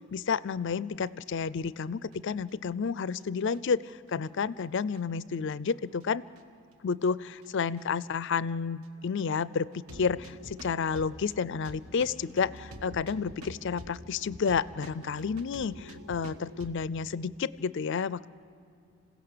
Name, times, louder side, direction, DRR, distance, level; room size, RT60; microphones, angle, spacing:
voice 1, 0.0-6.2 6.8-18.3, left 5 dB, 55° left, 18 dB, 0.4 m, -31 dB
sound 1, 1.4-2.2 2.5-2.6 3.2-3.3 3.5-3.6 4.1-5.0 5.7-6.0 6.3-6.4 7.1-7.5 7.8-7.9 8.1-8.2 8.8-8.9 9.2-9.3 9.7-16.8, equal, 80° right, 1.4 m, -47 dB
27.0 x 16.5 x 6.7 m, 2.5 s
head